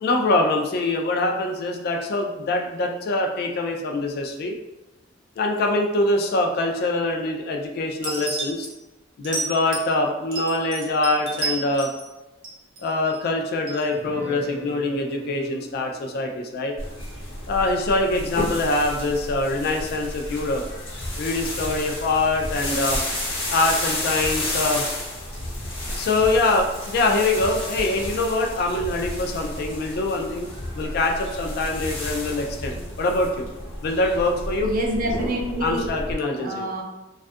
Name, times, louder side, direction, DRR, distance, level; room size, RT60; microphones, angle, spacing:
voice 1, 0.0-4.6 5.4-8.7 9.2-11.9 12.8-16.7 17.5-20.6 21.2-23.0 23.5-24.8 25.9-30.5 30.7-33.5 33.8-34.7 35.6-36.7, left 2 dB, 50° left, 3 dB, 0.3 m, -24 dB
sound 1, 8.0-8.7 9.2-9.9 10.3-12.1 12.4-13.2 13.7-13.8, right 4 dB, 75° right, 0.8 m, -30 dB
Guitar, 13.9-20.1, left 1 dB, 10° right, 0.9 m, -43 dB
sound 2, 16.8-36.1, left 1 dB, 90° left, 0.8 m, -31 dB
voice 2, 34.6-35.9 36.2-36.8, right 1 dB, 45° right, 0 dB, 0.4 m, -27 dB
2.3 x 2.3 x 2.5 m, 1.0 s
head